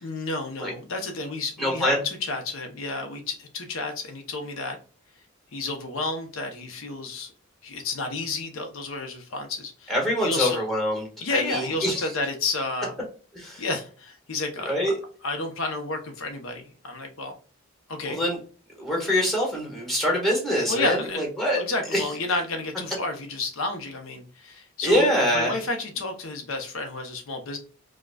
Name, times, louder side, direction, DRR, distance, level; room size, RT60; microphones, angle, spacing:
voice 1, 0.0-4.8 5.5-7.3 7.6-9.9 10.2-10.6 11.2-12.9 13.6-14.7 15.2-17.3 17.9-18.2 20.7-21.3 21.5-25.1 25.3-27.6, left 3 dB, 80° left, 5 dB, 0.7 m, -31 dB
voice 2, 1.6-2.0 9.9-11.0 11.3-12.1 13.3-13.6 14.6-14.9 18.0-18.4 18.8-21.6 21.9-22.0 24.8-25.6, equal, ahead, -2 dB, 1.4 m, -24 dB
4.8 x 2.2 x 2.3 m, 0.40 s
head